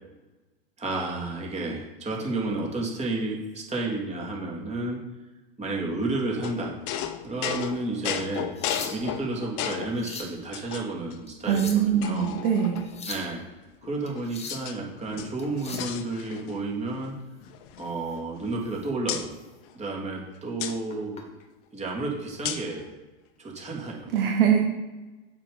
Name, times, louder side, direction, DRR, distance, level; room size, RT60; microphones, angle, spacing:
voice 1, 0.8-5.0 5.6-6.7 7.2-8.5 8.9-12.4 13.1-13.4 13.8-17.2 17.8-19.4 19.7-21.2 21.7-23.0 23.4-24.1, right 2 dB, 20° right, -2 dB, 3.1 m, -31 dB
sound 1, 6.4-10.0 10.5-11.1 11.5-11.6 12.0-13.1 13.8-14.8 15.1-16.6 16.9-17.1 17.4-18.7 19.1-19.3 20.6-20.8 22.4-22.8, left 10 dB, 50° left, 1.0 m, -34 dB
sound 2, 8.3-9.2 9.8-10.4 11.3-12.0 12.8-13.3 14.1-14.7 15.4-15.9 18.0-18.1 18.7-18.9 19.3-19.5 20.7-21.2 22.3-22.5, left 3 dB, 20° left, 1.8 m, -40 dB
voice 2, 11.5-12.9 24.1-24.6, right 8 dB, 65° right, 1 dB, 1.6 m, -22 dB
7.5 x 6.9 x 5.3 m, 1.2 s
hypercardioid pair, 100°, 30 cm